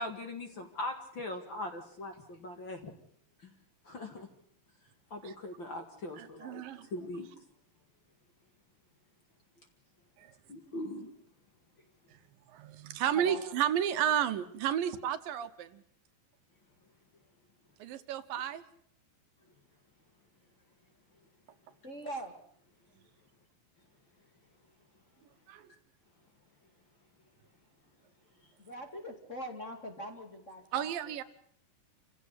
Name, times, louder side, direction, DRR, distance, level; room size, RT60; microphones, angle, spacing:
voice 1, 0.0-2.9 3.4-3.5 3.8-4.3 5.1-6.6 6.9-7.3 10.5-11.1, left 1 dB, 40° left, 2.3 m, -40 dB
voice 2, 6.2-6.9 10.2-10.3 12.5-15.8 17.8-18.6 25.5-25.7 30.7-31.2, right 10 dB, 75° right, 2.7 m, -32 dB
voice 3, 21.8-22.4 28.6-30.9, right 1 dB, 25° left, 2.3 m, -42 dB
28.0 x 16.0 x 8.3 m
omnidirectional pair, 4.1 m